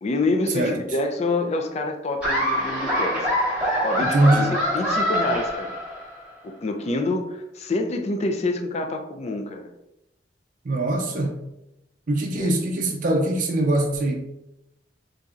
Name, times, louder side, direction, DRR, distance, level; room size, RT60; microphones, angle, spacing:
voice 1, 0.0-4.4 4.7-5.7 6.4-9.7 12.4-12.5, left 2 dB, 40° left, 5 dB, 0.4 m, -27 dB
Laughter, 2.2-6.2, equal, 5° right, 0.9 m, -24 dB
voice 2, 4.0-4.5 10.6-11.4 12.1-14.2, right 1 dB, 50° right, 2 dB, 0.5 m, -22 dB
4.2 x 2.6 x 2.4 m, 0.88 s
head